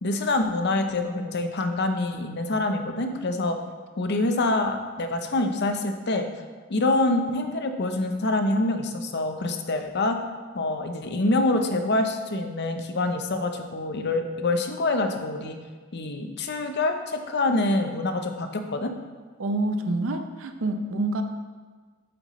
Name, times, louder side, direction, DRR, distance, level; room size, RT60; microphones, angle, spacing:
voice 1, 0.0-3.5 4.0-6.3 6.7-10.2 10.5-15.6 15.9-18.9, left 2 dB, 55° left, 6 dB, 0.7 m, -26 dB
voice 2, 19.4-21.2, right 2 dB, 75° right, 7 dB, 0.7 m, -27 dB
7.8 x 7.8 x 3.1 m, 1.5 s
head